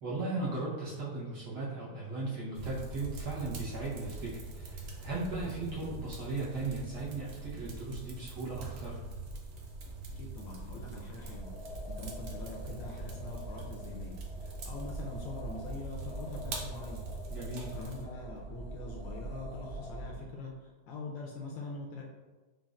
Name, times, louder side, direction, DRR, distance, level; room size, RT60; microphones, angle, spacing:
voice 1, 0.0-9.0 17.3-17.7, right 3 dB, 60° right, -7 dB, 1.4 m, -37 dB
sound 1, 2.5-18.1, right 3 dB, 80° right, 0.8 m, -44 dB
voice 2, 10.1-11.5 11.8-17.0 17.7-22.0, left 2 dB, 75° left, -1 dB, 1.2 m, -43 dB
sound 2, 11.1-20.2, right 1 dB, 35° right, 1.4 m, -43 dB
5.1 x 2.4 x 2.4 m, 1.2 s
omnidirectional pair, 2.3 m